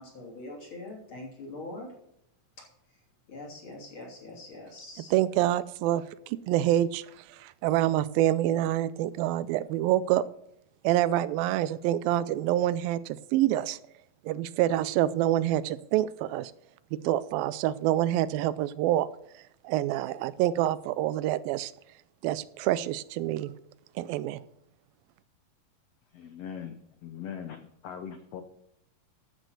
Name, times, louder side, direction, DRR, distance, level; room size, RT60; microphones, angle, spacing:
voice 1, 0.0-1.9 2.6-3.0 3.3-5.1, left 2 dB, 35° left, -2 dB, 3.5 m, -43 dB
voice 2, 5.1-10.2 10.8-13.8 14.2-16.5 16.9-19.1 19.3-21.7 22.2-23.5 24.0-24.4, right 13 dB, 90° right, 16 dB, 2.3 m, -27 dB
voice 3, 26.1-28.4, left 8 dB, 90° left, 7 dB, 1.4 m, -41 dB
13.5 x 6.4 x 6.4 m, 0.78 s
omnidirectional pair, 4.0 m